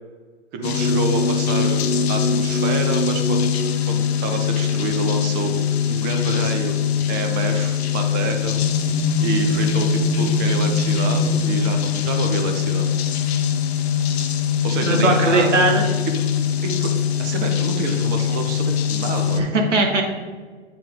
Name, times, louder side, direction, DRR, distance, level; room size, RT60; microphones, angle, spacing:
voice 1, 0.5-3.5 3.9-5.6 5.9-6.8 7.1-8.6 9.2-12.9 14.6-15.8 16.1-16.2 16.6-19.5, right 4 dB, 30° right, 4 dB, 0.9 m, -28 dB
sound 1, 0.6-19.4, left 6 dB, 60° left, 0.7 m, -22 dB
voice 2, 14.8-15.8 19.4-20.0, right 2 dB, 85° right, 2 dB, 1.4 m, -18 dB
7.6 x 4.4 x 3.6 m, 1.5 s
hypercardioid pair, 115°, 35 cm